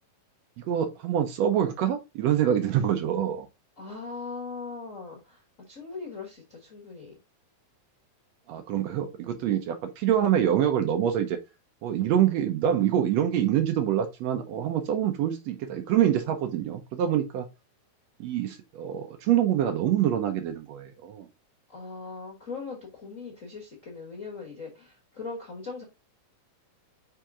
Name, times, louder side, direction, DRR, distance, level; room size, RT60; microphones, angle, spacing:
voice 1, 0.6-3.5 8.5-11.4 11.8-17.5 18.2-21.3, right 10 dB, 80° right, 1.5 m, -25 dB
voice 2, 3.8-7.1 21.7-25.8, left 4 dB, 65° left, 0.7 m, -40 dB
5.7 x 4.9 x 3.6 m
omnidirectional pair, 4.1 m